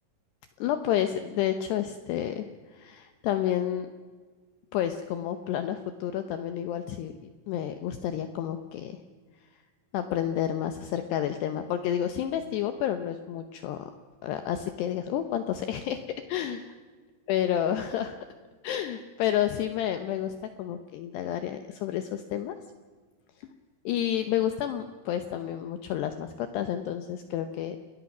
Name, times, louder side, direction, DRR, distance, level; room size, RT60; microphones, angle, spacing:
voice 1, 0.6-2.5 2.7-3.9 4.7-7.1 7.5-9.0 9.9-13.9 14.2-16.7 17.3-18.2 18.6-20.3 20.6-22.6 23.4-23.5 23.9-27.8, left 10 dB, 80° left, 8 dB, 2.4 m, -30 dB
29.0 x 19.5 x 6.1 m, 1.5 s
omnidirectional pair, 5.9 m